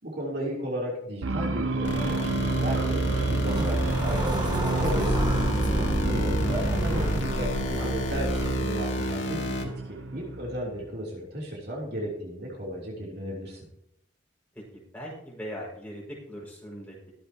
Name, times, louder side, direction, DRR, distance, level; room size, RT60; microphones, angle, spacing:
voice 1, 0.0-5.2 6.0-13.6, equal, 55° right, -3 dB, 3.3 m, -34 dB
sound 1, 1.2-10.8, right 3 dB, 85° right, 0.9 m, -29 dB
sound 2, 1.8-9.6, left 1 dB, 70° left, 2.1 m, -31 dB
sound 3, 3.3-8.5, right 1 dB, 20° right, 1.3 m, -32 dB
voice 2, 5.7-6.1 14.7-17.0, equal, 10° left, -5 dB, 5.8 m, -40 dB
23.0 x 7.9 x 3.0 m, 0.74 s
head